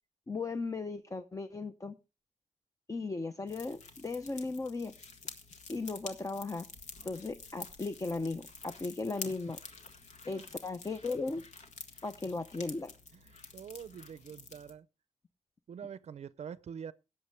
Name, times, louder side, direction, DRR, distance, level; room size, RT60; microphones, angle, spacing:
voice 1, 0.3-2.0 2.9-4.9 5.7-6.7 7.0-9.6 10.2-11.4 12.0-12.9, left 3 dB, 25° left, 0.7 m, -36 dB
sound 1, 3.5-14.7, left 4 dB, 75° left, 1.8 m, -49 dB
voice 2, 13.1-14.9 15.7-16.9, right 7 dB, 65° right, 0.5 m, -45 dB
17.5 x 7.5 x 3.3 m
wide cardioid pair, 110°, 12 cm